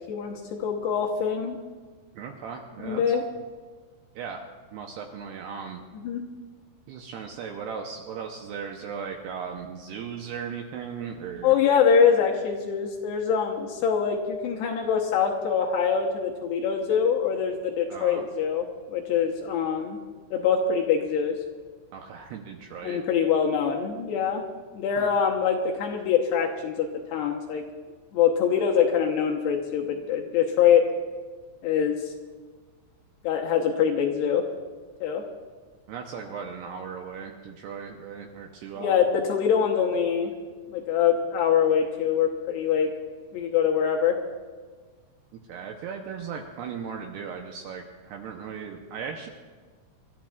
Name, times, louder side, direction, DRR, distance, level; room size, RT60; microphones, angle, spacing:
voice 1, 0.1-1.6 2.8-3.2 6.0-6.2 11.4-20.0 20.3-21.4 22.8-24.4 24.7-27.6 28.1-30.8 31.6-32.1 33.2-34.4 35.0-35.2 38.8-40.3 40.7-42.9 43.3-44.2, left 7 dB, 75° left, 0 dB, 2.7 m, -24 dB
voice 2, 2.2-3.1 4.2-4.4 4.7-5.8 6.9-11.5 17.9-18.2 21.9-23.0 25.0-25.2 35.9-39.0 45.3-49.3, right 6 dB, 80° right, 2 dB, 2.4 m, -37 dB
28.5 x 13.5 x 2.4 m, 1.5 s
omnidirectional pair, 5.5 m